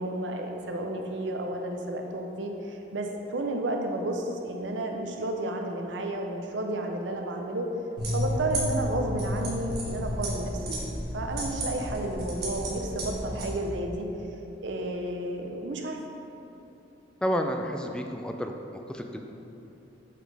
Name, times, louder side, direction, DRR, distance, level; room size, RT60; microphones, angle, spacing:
voice 1, 0.0-7.7 8.1-14.1 14.6-16.0, right 1 dB, 80° right, 3 dB, 0.6 m, -32 dB
sound 1, 8.0-13.5, equal, 60° right, 1.4 m, -32 dB
voice 2, 17.2-18.5 18.9-19.3, equal, 5° left, 4 dB, 0.3 m, -30 dB
7.5 x 4.3 x 3.3 m, 2.9 s
head